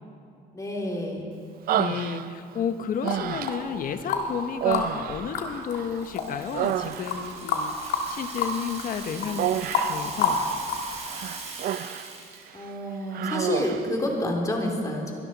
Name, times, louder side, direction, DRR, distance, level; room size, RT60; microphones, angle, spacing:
voice 1, 0.5-1.2 12.5-15.1, left 1 dB, 20° left, 0 dB, 2.8 m, -28 dB
voice 2, 1.7-9.6 9.9-10.4, left 7 dB, 55° left, 9 dB, 1.0 m, -32 dB
Human voice, 1.7-2.6 3.0-3.8 4.6-6.0 6.3-7.4 9.4-10.1 11.1-12.1 12.5-12.7 13.1-13.9, right 11 dB, 60° right, 0.5 m, -29 dB
sound 1, 3.1-4.4 4.7-11.0, left 5 dB, 80° left, 2.1 m, -28 dB
Rattle (instrument), 5.6-12.5, right 4 dB, 40° right, 3.3 m, -41 dB
22.5 x 12.5 x 4.1 m, 2.6 s
cardioid pair, 110°, 17 cm